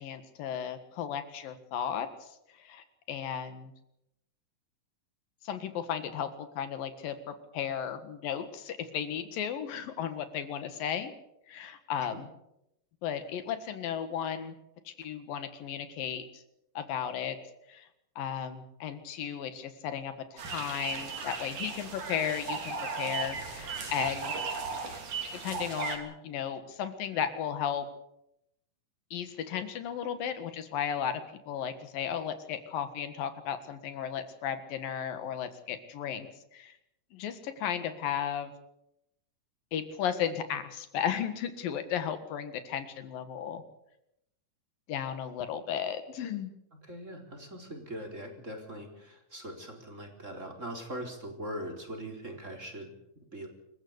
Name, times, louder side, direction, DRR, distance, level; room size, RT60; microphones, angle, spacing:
voice 1, 0.0-2.3 2.6-3.7 5.4-11.1 11.5-12.3 13.0-14.6 14.9-16.4 16.8-17.4 17.7-17.9 18.2-24.3 25.4-27.9 29.1-36.3 36.5-36.7 37.1-38.5 39.7-43.6 44.9-46.5, left 8 dB, 85° left, 10 dB, 3.5 m, -35 dB
sound 1, 20.4-26.0, right 5 dB, 65° right, 4.8 m, -36 dB
voice 2, 46.9-52.9 53.3-53.5, equal, 20° right, 3 dB, 4.2 m, -41 dB
27.0 x 15.0 x 8.1 m, 0.83 s
omnidirectional pair, 3.9 m